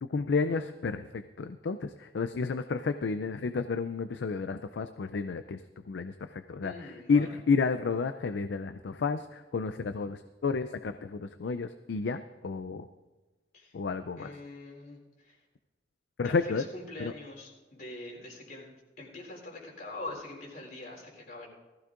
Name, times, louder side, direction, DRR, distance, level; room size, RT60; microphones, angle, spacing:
voice 1, 0.0-5.6 5.9-12.9 13.7-14.3 16.2-16.6 17.0-17.1, left 4 dB, 75° left, 10 dB, 0.4 m, -31 dB
voice 2, 6.6-7.3 13.5-13.8 14.1-15.4 16.2-21.5, left 2 dB, 55° left, -1 dB, 3.6 m, -44 dB
19.0 x 14.5 x 2.5 m, 1.2 s
head